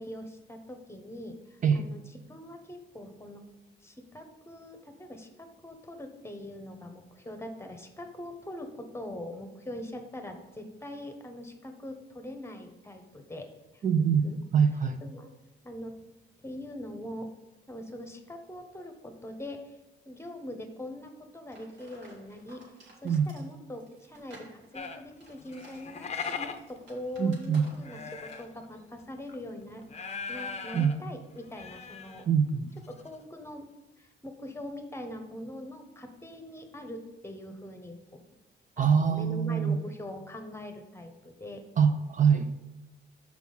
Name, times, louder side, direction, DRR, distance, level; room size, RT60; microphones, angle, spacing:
voice 1, 0.0-2.0 2.3-3.4 3.8-13.5 13.7-14.4 15.0-15.3 15.6-16.0 16.4-17.3 17.7-19.8 20.1-22.6 23.0-29.8 30.3-32.2 32.9-33.7 34.0-38.2 38.8-41.6, left 1 dB, 15° left, 6 dB, 1.0 m, -42 dB
voice 2, 13.8-14.3 14.5-15.0 23.0-23.3 27.2-27.7 30.7-30.9 32.3-32.7 38.8-39.8 41.8-42.6, right 7 dB, 40° right, 8 dB, 0.5 m, -24 dB
sound 1, 21.5-28.0 28.3-28.5, right 1 dB, 70° right, 2.2 m, -53 dB
sound 2, 24.7-28.6 29.0-29.3 29.8-31.0 31.3-32.2 32.5-32.6 32.8-33.1, left 5 dB, 35° left, 0.6 m, -39 dB
6.0 x 4.7 x 5.5 m, 0.99 s
cardioid pair, 90°, 20 cm